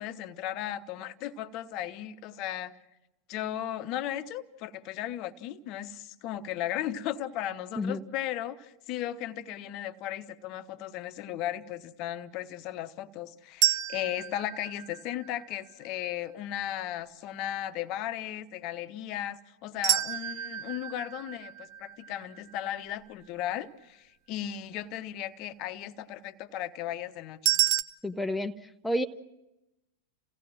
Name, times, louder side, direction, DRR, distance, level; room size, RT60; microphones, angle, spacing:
voice 1, 0.0-2.7 3.3-27.5, left 12 dB, 40° left, 12 dB, 0.9 m, -36 dB
sound 1, 13.6-15.7 19.8-22.9 27.5-27.8, right 14 dB, 40° right, 0.7 m, -30 dB
voice 2, 28.0-28.5 28.8-29.0, left 1 dB, 5° left, 6 dB, 0.7 m, -29 dB
28.5 x 17.0 x 6.1 m, 0.92 s
figure-of-eight pair, 90°, 0 cm